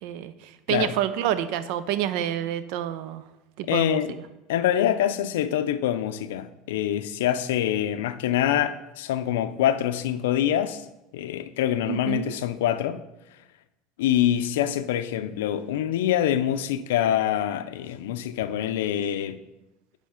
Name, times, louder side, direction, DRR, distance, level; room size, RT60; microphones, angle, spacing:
voice 1, 0.0-3.2 3.6-4.0 11.9-12.3, right 11 dB, 70° right, 0.5 m, -28 dB
voice 2, 3.7-4.2 4.5-10.9 11.1-13.0 14.0-19.4, left 11 dB, 85° left, 0.4 m, -25 dB
9.3 x 3.4 x 5.0 m
supercardioid pair, 105°, 0 cm